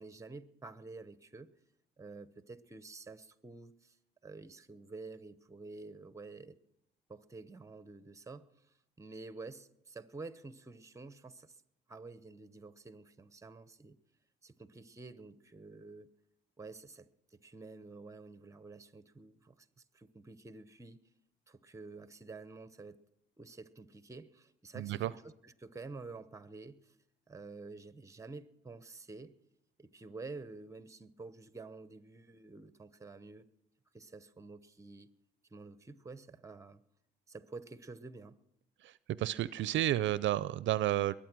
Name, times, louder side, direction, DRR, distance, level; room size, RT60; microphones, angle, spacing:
voice 1, 0.0-1.5 2.0-4.0 4.2-6.6 7.1-11.6 11.9-14.0 14.4-16.1 16.6-19.7 19.9-21.0 21.5-23.0 23.4-27.0 27.3-29.3 29.8-33.5 33.9-35.1 35.5-36.8 37.3-38.4, right 3 dB, 15° right, 0.8 m, -49 dB
voice 2, 24.8-25.1 38.8-38.9 39.2-41.1, right 13 dB, 70° right, 0.5 m, -31 dB
22.0 x 8.8 x 6.1 m
cardioid pair, 90°, 20 cm